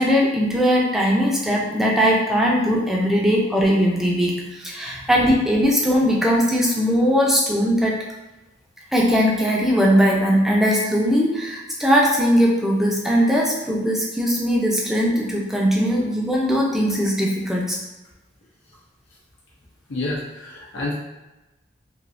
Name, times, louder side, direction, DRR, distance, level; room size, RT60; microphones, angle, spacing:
voice 1, 0.0-8.0 8.9-17.8, equal, ahead, -3 dB, 0.5 m, -19 dB
voice 2, 19.9-20.9, left 2 dB, 80° left, -5 dB, 0.7 m, -29 dB
3.3 x 2.8 x 2.6 m, 1.0 s
head